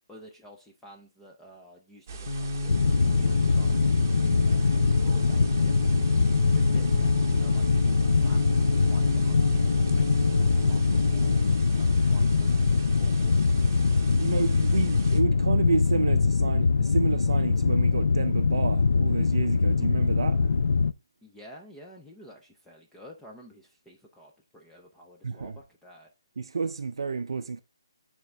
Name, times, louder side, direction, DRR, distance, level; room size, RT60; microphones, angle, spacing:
voice 1, 0.1-6.0 6.5-7.7 8.0-10.8 11.1-13.3 21.2-26.1, equal, 5° left, 0.4 m, -51 dB
sound 1, 2.1-15.2, right 3 dB, 30° right, 0.8 m, -38 dB
sound 2, 2.3-11.6, left 2 dB, 55° left, 1.1 m, -31 dB
sound 3, 2.7-20.9, left 4 dB, 70° left, 0.3 m, -23 dB
voice 2, 4.2-4.6 14.1-20.5 25.2-25.6 26.4-27.6, right 4 dB, 75° right, 0.4 m, -30 dB
9.3 x 3.5 x 3.2 m
hypercardioid pair, 170°, 3 cm